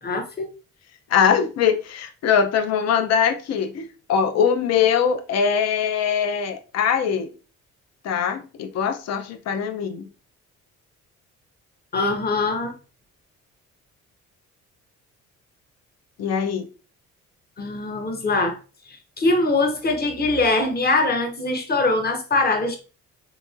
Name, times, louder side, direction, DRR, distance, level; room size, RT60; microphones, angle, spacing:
voice 1, 0.0-0.5 11.9-12.7 17.6-18.6 19.2-22.8, left 2 dB, 30° left, 0.8 m, -22 dB
voice 2, 1.1-7.3 8.0-10.1 16.2-16.7, left 7 dB, 60° left, 0.6 m, -22 dB
3.6 x 2.9 x 2.4 m
cardioid pair, 90°, 30 cm